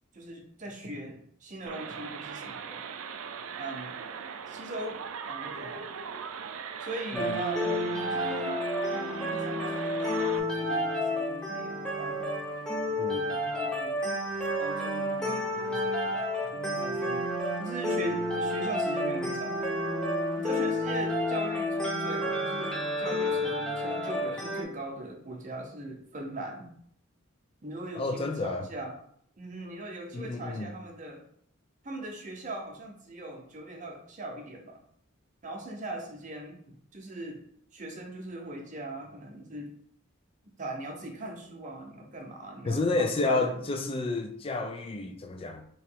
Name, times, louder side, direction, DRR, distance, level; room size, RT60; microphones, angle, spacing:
voice 1, 0.1-2.8 3.6-4.0 4.5-5.0 5.3-5.9 6.8-12.4 13.3-14.0 14.4-19.6 20.4-26.7 27.6-29.0 29.4-31.2 31.8-34.8 35.4-37.4 37.7-39.7 40.6-43.7, right 1 dB, 35° right, 0.7 m, -40 dB
sound 1, 1.7-10.4, right 6 dB, 75° right, 0.4 m, -40 dB
voice 2, 7.1-7.4 13.0-13.3 28.0-28.7 30.1-30.7 42.7-45.6, left 3 dB, 25° left, 0.4 m, -30 dB
sound 2, 7.1-24.6, left 1 dB, 5° left, 0.8 m, -30 dB
3.1 x 2.8 x 4.5 m
head